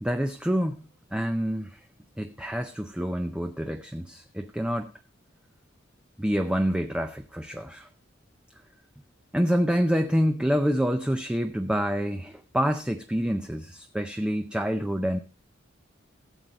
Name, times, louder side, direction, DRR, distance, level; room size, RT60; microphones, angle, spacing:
voice 1, 0.0-1.8 2.2-4.9 6.2-7.9 9.3-15.2, equal, 5° right, 8 dB, 0.5 m, -27 dB
14.5 x 7.7 x 3.9 m, 0.34 s
head